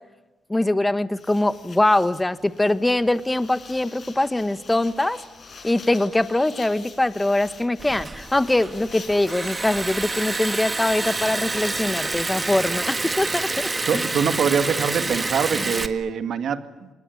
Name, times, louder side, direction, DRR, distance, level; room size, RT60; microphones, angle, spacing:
voice 1, 0.5-5.2 5.6-14.0, left 1 dB, 10° left, 12 dB, 1.3 m, -22 dB
sound 1, 1.2-13.4, left 4 dB, 45° left, 6.8 m, -46 dB
Liquid, 7.8-15.9, right 3 dB, 20° right, 1.6 m, -28 dB
voice 2, 13.9-16.9, right 7 dB, 65° right, 8 dB, 2.1 m, -24 dB
27.5 x 20.5 x 9.6 m, 1.1 s
cardioid pair, 90°, 0 cm